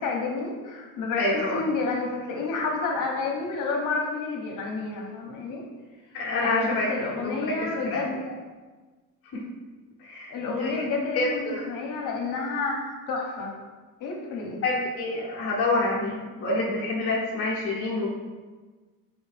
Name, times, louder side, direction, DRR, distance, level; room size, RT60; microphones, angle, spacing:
voice 1, 0.0-5.6 6.4-8.4 10.3-13.5 14.0-14.6, left 3 dB, 55° left, 0 dB, 0.9 m, -30 dB
voice 2, 1.2-1.6 6.1-6.9 7.2-7.5 7.8-8.2 9.3-9.4 10.0-10.8 11.1-11.7 14.6-18.1, left 2 dB, 40° left, -5 dB, 0.6 m, -27 dB
4.3 x 3.1 x 3.3 m, 1.3 s
cardioid pair, 175°, 37 cm